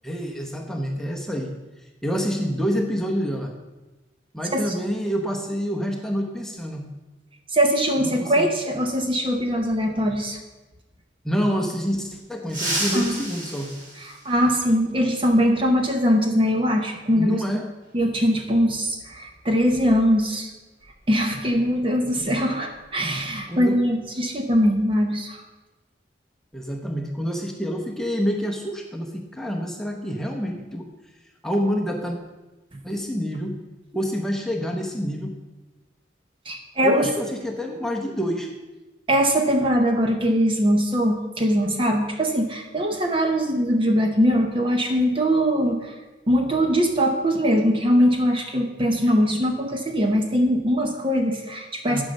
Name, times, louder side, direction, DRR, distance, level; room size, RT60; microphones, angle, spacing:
voice 1, 0.0-1.5 2.0-3.5 4.3-6.9 8.0-8.5 11.2-13.7 17.2-17.7 21.6-21.8 23.5-23.8 26.5-30.9 31.4-32.2 32.8-33.6 33.9-35.3 36.8-38.5 51.9-52.0, equal, 5° left, 1 dB, 1.0 m, -27 dB
voice 2, 7.5-10.4 12.9-13.2 14.0-17.4 17.9-20.5 21.1-25.4 32.7-32.8 36.5-37.1 39.1-46.0 46.3-52.0, equal, 30° right, 3 dB, 0.9 m, -21 dB
sound 1, 12.4-14.9 16.5-16.6 17.8-17.9 19.6-19.7 20.1-20.3 20.8-22.9 23.2-23.5 23.9-24.3, right 1 dB, 45° right, 3.8 m, -33 dB
11.0 x 5.5 x 6.5 m, 1.1 s
head